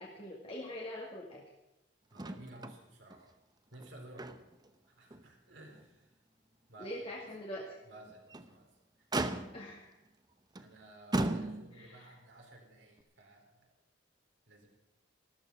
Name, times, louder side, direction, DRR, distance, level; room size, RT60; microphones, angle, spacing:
voice 1, 0.0-1.4 6.8-7.8 9.5-9.9 11.7-12.1, left 1 dB, 30° left, -3 dB, 2.0 m, -43 dB
voice 2, 2.1-3.3 3.7-4.4 4.9-6.1 6.7-7.2 7.8-8.7 9.0-9.1 10.5-13.7 14.5-14.7, right 1 dB, 75° right, 1 dB, 4.1 m, -54 dB
Motor vehicle (road), 2.2-2.8 3.1-3.2 3.7-4.7 5.1-5.2 5.8-5.9 8.1-8.6 9.1-9.8 10.6-10.7 11.1-11.9 13.0-13.1, right 2 dB, 20° right, 0.8 m, -36 dB
14.0 x 13.0 x 6.1 m, 0.92 s
head